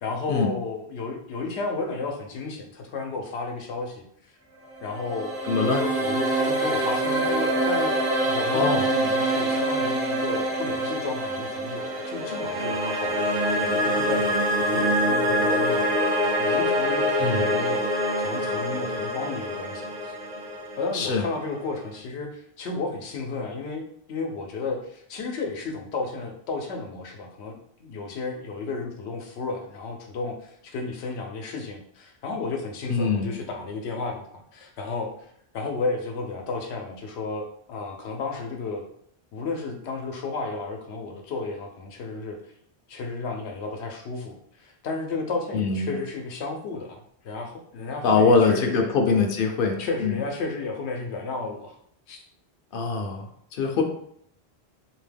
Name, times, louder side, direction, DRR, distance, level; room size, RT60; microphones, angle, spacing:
voice 1, 0.0-4.0 4.8-5.3 5.6-16.0 16.4-20.1 20.8-23.8 24.1-35.1 35.5-38.9 39.3-42.4 42.9-48.9 49.8-51.8 52.1-52.2, left 3 dB, 90° left, 3 dB, 0.9 m, -33 dB
sound 1, 4.7-21.8, right 1 dB, 65° right, 0.9 m, -25 dB
voice 2, 5.5-5.8 8.5-8.8 17.2-17.5 20.9-21.2 32.9-33.3 45.5-45.9 48.0-50.2 52.7-53.8, left 4 dB, 65° left, 4 dB, 0.7 m, -23 dB
2.7 x 2.1 x 3.3 m, 0.66 s
omnidirectional pair, 1.1 m